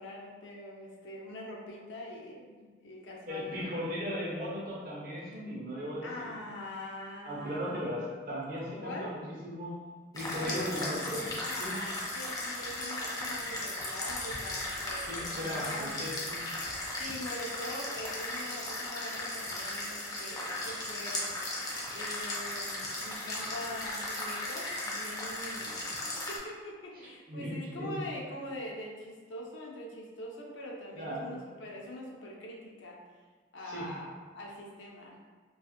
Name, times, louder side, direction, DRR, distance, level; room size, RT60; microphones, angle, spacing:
voice 1, 0.0-3.7 6.0-7.9 8.8-9.1 10.3-10.9 11.4-16.0 17.0-21.3 21.9-33.0 33.5-35.3, left 1 dB, 85° left, -2 dB, 0.5 m, -43 dB
voice 2, 3.3-6.3 7.2-9.2 9.4-9.8 10.1-11.2 11.6-11.8 15.1-16.5 26.9-28.0 30.9-31.3 33.6-33.9, equal, 50° right, -6 dB, 0.6 m, -37 dB
sound 1, 10.1-26.4, left 1 dB, 20° left, 0.4 m, -36 dB
2.4 x 2.3 x 2.7 m, 1.4 s
head